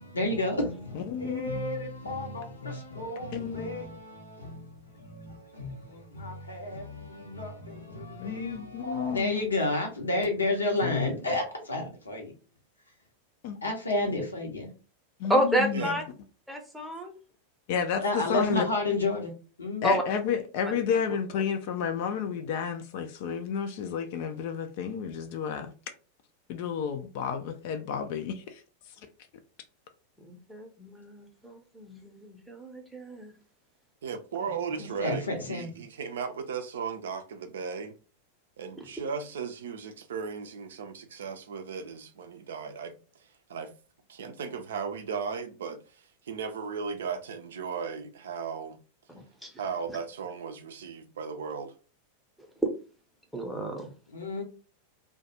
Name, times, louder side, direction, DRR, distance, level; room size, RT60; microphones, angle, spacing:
voice 1, 0.0-12.3 13.6-14.7 18.0-19.3 19.6-20.0 34.8-35.7 54.1-54.4, left 2 dB, 75° left, 0.7 m, -31 dB
voice 2, 0.9-1.6 3.3-3.7 8.2-9.5 10.8-11.1 13.4-13.6 15.2-16.0 17.7-18.7 19.8-25.7 26.5-28.6, left 7 dB, 50° left, 0.3 m, -31 dB
voice 3, 15.3-16.0 16.5-17.1 19.8-20.0 30.2-33.3 49.4-49.5 52.6-52.7 53.3-53.9, equal, ahead, 0.7 m, -30 dB
voice 4, 34.0-37.9 38.6-42.9 43.2-43.7 44.1-48.8 49.6-51.7, right 6 dB, 60° right, 0.4 m, -36 dB
2.3 x 2.2 x 2.8 m
figure-of-eight pair, 90°, 0 cm